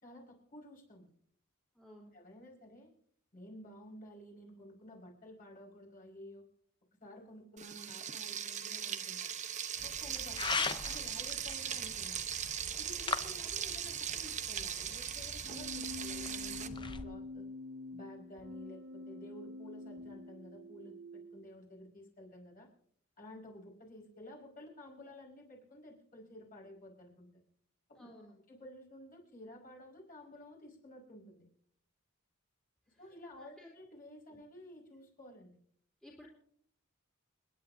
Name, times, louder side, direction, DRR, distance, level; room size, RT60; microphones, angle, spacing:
voice 1, 0.0-1.1 2.1-2.9 3.3-6.4 7.0-9.3 9.8-12.3 12.8-17.5 17.9-22.7 23.2-27.3 27.9-28.1 28.5-31.5 33.0-35.5, left 1 dB, 40° left, -1 dB, 5.4 m, -53 dB
voice 2, 1.7-2.1 28.0-28.3 33.4-33.7 36.0-36.3, left 1 dB, 5° left, -2 dB, 3.1 m, -55 dB
Frying (food), 7.6-16.7, right 8 dB, 35° right, 0.9 m, -39 dB
sound 1, 9.8-17.0, left 4 dB, 20° left, 0.7 m, -41 dB
Keyboard (musical), 15.4-21.4, left 2 dB, 85° right, 2.8 m, -46 dB
29.5 x 10.5 x 2.7 m, 0.63 s
head